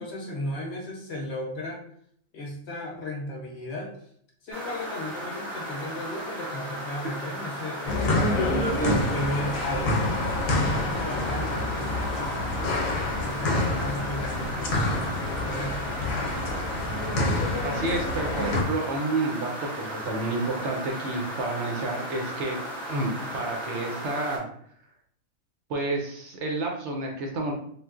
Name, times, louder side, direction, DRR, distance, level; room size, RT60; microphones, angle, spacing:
voice 1, 0.0-1.8 2.3-4.0 4.4-10.2 10.7-12.7 13.2-15.1 15.4-16.0, left 1 dB, 60° left, -1 dB, 0.8 m, -35 dB
sound 1, 4.5-24.4, equal, ahead, 0.8 m, -36 dB
sound 2, 7.9-18.6, left 1 dB, 80° left, 1.1 m, -27 dB
voice 2, 17.6-22.6 22.9-24.4 25.7-27.5, right 2 dB, 65° right, 1 dB, 0.8 m, -30 dB
3.2 x 2.3 x 2.3 m, 0.64 s
omnidirectional pair, 1.4 m